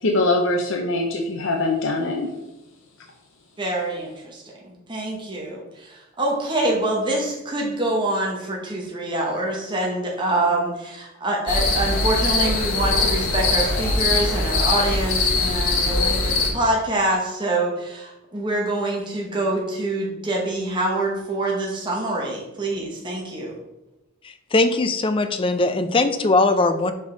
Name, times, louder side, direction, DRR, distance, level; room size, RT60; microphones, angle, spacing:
voice 1, 0.0-2.3, left 2 dB, 65° left, 2 dB, 0.7 m, -22 dB
voice 2, 3.6-23.5, right 2 dB, 20° right, -2 dB, 1.0 m, -25 dB
sound 1, 11.5-16.5, left 3 dB, 85° left, 1.3 m, -21 dB
voice 3, 24.2-26.9, left 2 dB, 25° left, 9 dB, 0.4 m, -20 dB
5.3 x 5.2 x 3.8 m, 0.95 s
head